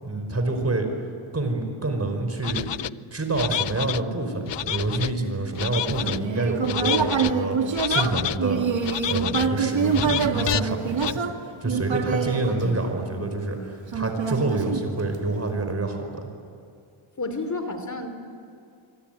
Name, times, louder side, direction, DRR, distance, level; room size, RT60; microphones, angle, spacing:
voice 1, 0.0-0.9 1.3-2.7 3.1-8.6 9.0-11.2 11.6-16.3, right 2 dB, 30° right, 5 dB, 5.2 m, -27 dB
sound 1, 2.4-2.9 3.3-4.0 4.5-5.1 5.6-6.2 6.6-7.3 7.7-8.4 8.8-9.5 9.9-10.6 11.0-11.1, left 12 dB, 65° left, 0.6 m, -29 dB
Human voice, 6.0-13.3 13.9-15.4, right 6 dB, 70° right, 2.2 m, -26 dB
voice 2, 17.2-18.1, left 2 dB, 35° left, 7 dB, 3.0 m, -30 dB
25.0 x 24.0 x 9.4 m, 2.4 s
cardioid pair, 80°, 47 cm